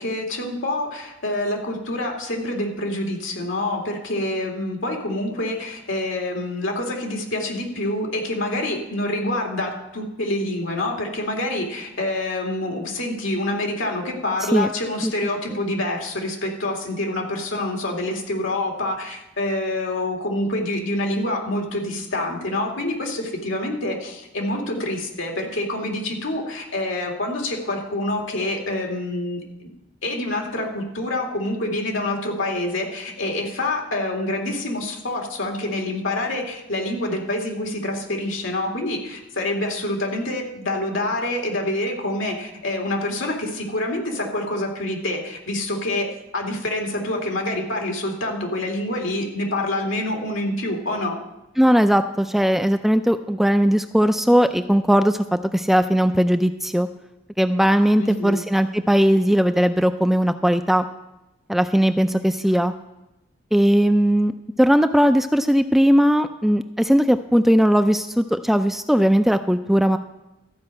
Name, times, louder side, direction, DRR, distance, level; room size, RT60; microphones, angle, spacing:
voice 1, 0.0-29.7 30.0-46.1 46.3-51.2 58.0-58.4, left 1 dB, 90° left, 0 dB, 2.3 m, -26 dB
voice 2, 51.6-56.9 57.4-60.9 61.5-62.7 63.5-64.3 64.6-70.0, equal, ahead, 8 dB, 0.3 m, -18 dB
13.5 x 5.3 x 7.6 m, 0.95 s
head